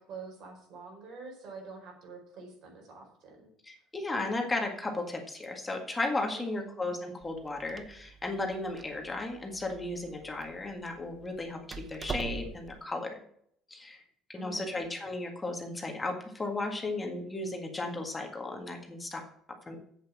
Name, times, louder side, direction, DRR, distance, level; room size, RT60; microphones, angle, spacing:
voice 1, 0.0-3.4 6.3-6.7 14.3-14.8, right 4 dB, 65° right, 1 dB, 4.8 m, -46 dB
voice 2, 3.6-13.1 13.7-14.0 14.3-19.2 19.7-19.8, left 2 dB, 15° left, 2 dB, 1.8 m, -35 dB
Door, 7.2-12.8, right 4 dB, 30° right, 0.8 m, -44 dB
8.2 x 7.4 x 7.4 m, 0.69 s
cardioid pair, 115°, 0 cm